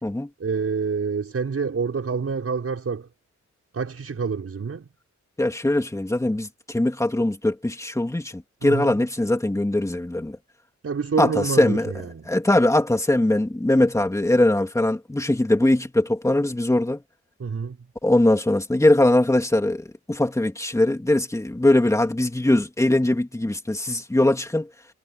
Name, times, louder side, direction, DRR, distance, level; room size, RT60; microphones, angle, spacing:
voice 1, 0.4-3.1 3.7-4.9 8.6-9.0 10.8-12.3 17.4-17.8, right 5 dB, 50° right, 6.2 m, -27 dB
voice 2, 5.4-10.4 11.2-11.9 12.3-17.0 18.0-24.7, left 1 dB, 10° left, 3.1 m, -21 dB
wide cardioid pair, 155°, 30 cm